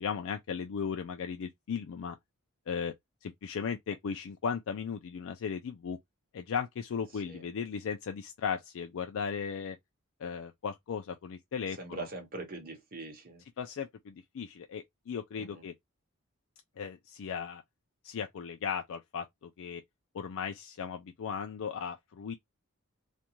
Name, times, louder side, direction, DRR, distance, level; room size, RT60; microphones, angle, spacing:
voice 1, 0.0-2.2 2.7-2.9 3.2-6.0 6.3-9.8 10.2-12.1 13.6-15.7 16.8-17.6 18.0-19.8 20.1-22.3, left 6 dB, 65° left, 0.4 m, -36 dB
voice 2, 7.1-7.5 11.7-13.4 15.4-15.6, right 3 dB, 40° right, 1.1 m, -43 dB
2.6 x 2.2 x 2.9 m
head